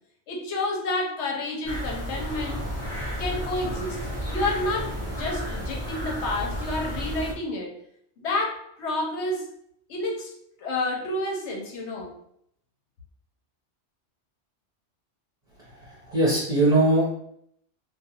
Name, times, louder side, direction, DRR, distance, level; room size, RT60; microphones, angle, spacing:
voice 1, 0.3-2.6 3.2-4.0 4.3-7.7 8.2-9.5 9.9-10.3 10.6-12.1, left 2 dB, 75° left, 0 dB, 1.0 m, -29 dB
sound 1, 1.6-7.3, equal, 15° right, 0.7 m, -32 dB
voice 2, 15.7-17.1, right 2 dB, 40° right, -7 dB, 0.8 m, -21 dB
2.4 x 2.3 x 2.8 m, 0.69 s
omnidirectional pair, 1.2 m